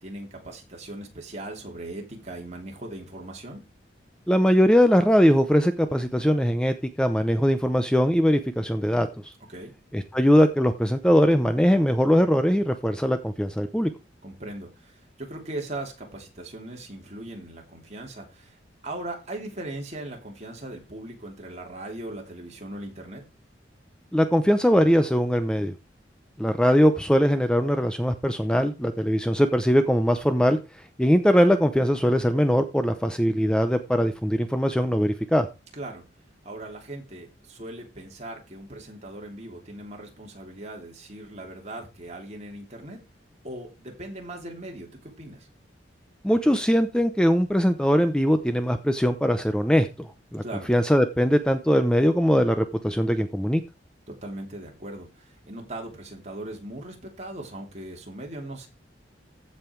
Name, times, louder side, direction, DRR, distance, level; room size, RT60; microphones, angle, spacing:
voice 1, 0.0-3.6 9.5-9.7 14.2-23.2 35.7-36.0 36.4-43.0 43.4-45.5 50.4-50.7 54.1-58.7, right 1 dB, 40° right, 3.1 m, -39 dB
voice 2, 4.3-9.3 9.9-13.9 24.1-25.7 26.4-30.6 31.0-35.5 46.2-50.4 50.7-53.6, equal, 5° left, 0.6 m, -21 dB
15.0 x 5.5 x 4.6 m
head